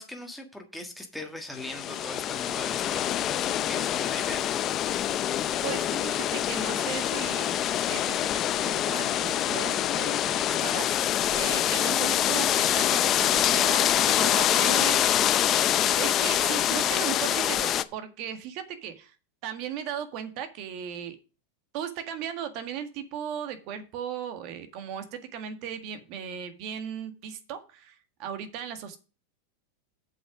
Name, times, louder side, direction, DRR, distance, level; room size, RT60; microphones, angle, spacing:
voice 1, 0.0-4.4, left 1 dB, ahead, 5 dB, 1.6 m, -40 dB
sound 1, 1.6-17.8, left 11 dB, 30° left, 0.6 m, -25 dB
voice 2, 5.6-15.0 15.9-19.1 19.4-21.2 21.7-29.0, right 8 dB, 50° right, 8 dB, 1.7 m, -37 dB
7.6 x 6.0 x 6.0 m, 0.33 s
supercardioid pair, 140°, 0 cm